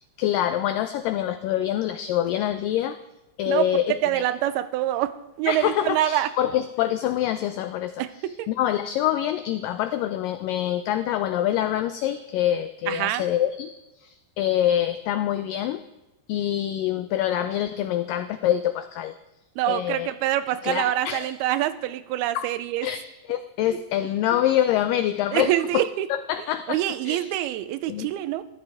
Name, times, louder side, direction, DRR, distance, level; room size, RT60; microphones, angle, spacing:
voice 1, 0.2-3.0 3.4-4.2 5.5-13.7 14.0-15.8 16.3-19.2 19.7-20.1 20.5-21.3 22.3-22.5 22.8-25.8 26.1-26.8 27.1-27.3 27.9-28.1, left 11 dB, 90° left, 10 dB, 1.9 m, -25 dB
voice 2, 3.5-6.3 8.0-8.5 12.9-13.2 19.6-22.9 23.7-23.8 25.3-26.1 26.7-28.4, right 13 dB, 85° right, 13 dB, 2.5 m, -25 dB
14.5 x 13.0 x 3.5 m, 0.97 s
omnidirectional pair, 4.5 m